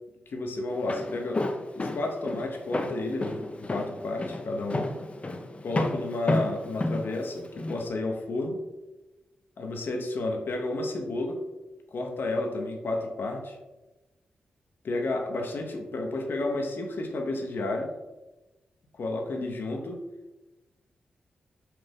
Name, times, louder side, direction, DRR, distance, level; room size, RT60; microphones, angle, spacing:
voice 1, 0.3-1.4 1.8-4.8 5.6-8.6 9.6-11.4 11.9-13.6 14.8-17.9 19.0-20.0, left 2 dB, 65° left, 3 dB, 0.8 m, -31 dB
Walk footsteps, 0.7-7.8, left 2 dB, 35° left, 0.6 m, -31 dB
5.6 x 2.5 x 3.5 m, 1.1 s
supercardioid pair, 45°, 4 cm